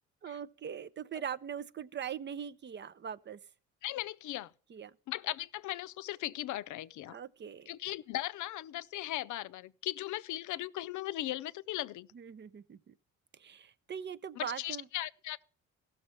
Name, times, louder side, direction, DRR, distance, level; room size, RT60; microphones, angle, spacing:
voice 1, 0.2-3.4 4.7-4.9 7.1-7.7 12.1-12.9 13.3-14.9, right 8 dB, 35° right, 0.5 m, -41 dB
voice 2, 3.8-4.5 5.1-7.2 7.7-12.1 14.4-15.4, left 15 dB, 75° left, 0.5 m, -38 dB
15.0 x 6.5 x 5.8 m
cardioid pair, 90°, 30 cm